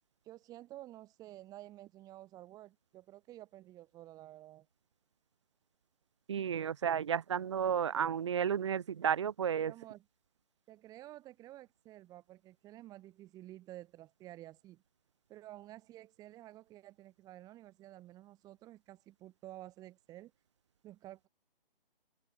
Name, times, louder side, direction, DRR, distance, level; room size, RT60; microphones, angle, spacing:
voice 1, 0.2-4.7 9.5-10.1 10.7-14.8 15.3-20.3 20.8-21.3, right 15 dB, 10° right, 7.5 m, -52 dB
voice 2, 6.3-9.7, right 8 dB, 30° right, 0.9 m, -32 dB
open air
figure-of-eight pair, 155°, 29 cm